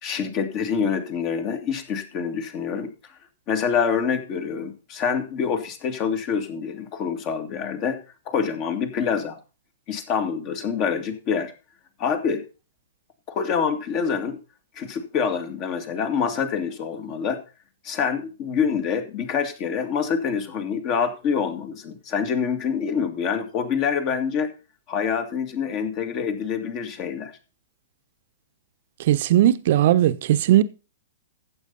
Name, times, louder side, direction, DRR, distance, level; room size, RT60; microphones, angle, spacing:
voice 1, 0.0-2.9 3.5-8.0 8.3-9.4 9.9-11.5 12.0-12.4 13.3-14.4 14.8-17.4 17.8-24.5 24.9-27.3, left 6 dB, 35° left, 2.3 m, -26 dB
voice 2, 29.0-30.6, right 13 dB, 50° right, 1.0 m, -18 dB
14.5 x 7.9 x 4.1 m
figure-of-eight pair, 110°, 0 cm